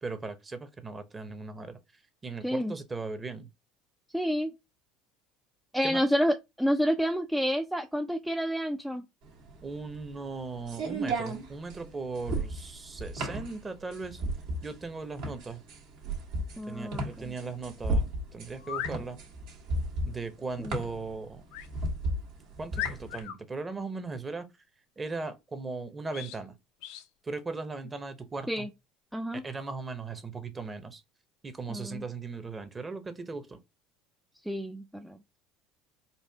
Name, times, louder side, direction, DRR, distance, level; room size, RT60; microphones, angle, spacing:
voice 1, 0.0-1.8 2.2-3.5 5.8-6.0 9.6-14.2 14.6-15.6 16.7-19.2 20.0-21.5 22.6-24.5 25.0-26.6 27.2-28.7 29.4-31.0 31.4-33.6, right 4 dB, 25° right, 0.8 m, -38 dB
voice 2, 2.4-2.7 4.1-4.5 5.7-9.1 16.6-17.3 20.6-20.7 28.5-28.7 29.1-29.4 31.7-32.0 34.4-35.2, equal, 5° right, 0.4 m, -29 dB
sound 1, 9.3-23.2, right 1 dB, 70° right, 1.5 m, -34 dB
sound 2, 18.6-19.0 21.5-21.7 22.2-22.3 22.7-23.4 26.1-26.4 26.8-27.1, left 11 dB, 75° left, 0.6 m, -37 dB
4.2 x 2.5 x 3.4 m
supercardioid pair, 90°, 0 cm